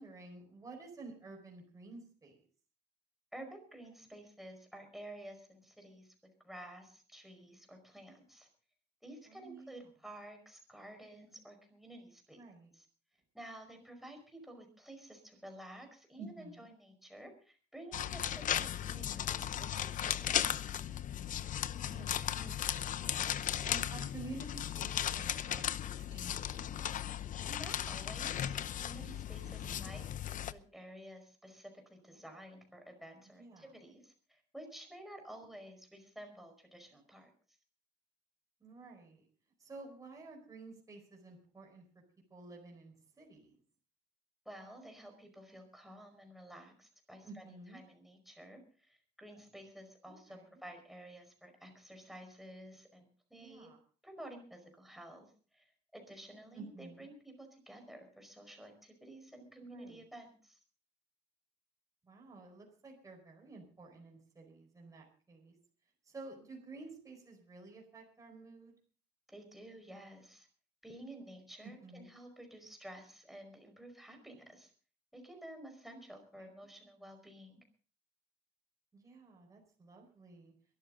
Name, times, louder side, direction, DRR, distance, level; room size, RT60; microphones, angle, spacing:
voice 1, 0.0-2.4 9.3-9.9 12.3-12.7 16.2-16.7 21.8-23.3 23.6-26.8 29.4-29.9 33.4-33.7 38.6-39.3 39.6-41.8 42.3-43.6 47.2-47.8 50.1-50.6 53.3-53.8 56.5-57.1 59.7-60.0 62.0-65.5 66.0-68.7 71.6-72.2 78.9-80.5, right 3 dB, 15° right, 0 dB, 4.8 m, -52 dB
voice 2, 3.3-6.1 6.4-8.5 9.0-12.4 12.7-12.9 13.3-20.7 27.4-37.3 44.4-53.7 54.0-60.6 69.3-70.5 70.8-74.7 75.1-77.6, right 1 dB, ahead, 4 dB, 5.1 m, -52 dB
sound 1, 17.9-30.5, left 10 dB, 45° left, 0.7 m, -36 dB
22.5 x 13.0 x 3.9 m, 0.40 s
cardioid pair, 150°, 19 cm